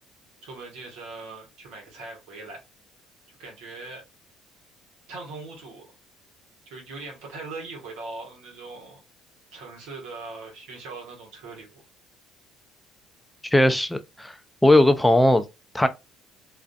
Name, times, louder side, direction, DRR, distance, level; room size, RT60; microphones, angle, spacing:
voice 1, 0.4-2.6 3.3-4.0 5.1-5.9 6.7-9.0 9.5-11.8, right 3 dB, 80° right, 1.1 m, -40 dB
voice 2, 13.4-14.3 14.6-15.4 15.7-15.9, left 1 dB, 5° left, 0.4 m, -18 dB
2.4 x 2.4 x 2.2 m
supercardioid pair, 80°, 0 cm